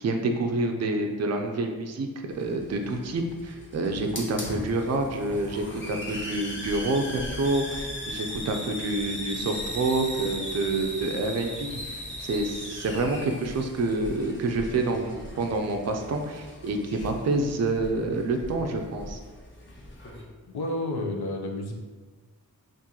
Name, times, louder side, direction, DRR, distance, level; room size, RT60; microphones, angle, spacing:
voice 1, 0.0-2.1 2.3-19.2, right 2 dB, 45° right, 4 dB, 0.4 m, -28 dB
Hiss, 2.3-20.2, left 1 dB, 30° left, 0.6 m, -38 dB
voice 2, 20.5-21.7, left 1 dB, 80° left, 1 dB, 0.6 m, -31 dB
2.8 x 2.6 x 3.7 m, 1.3 s
wide cardioid pair, 95°, 38 cm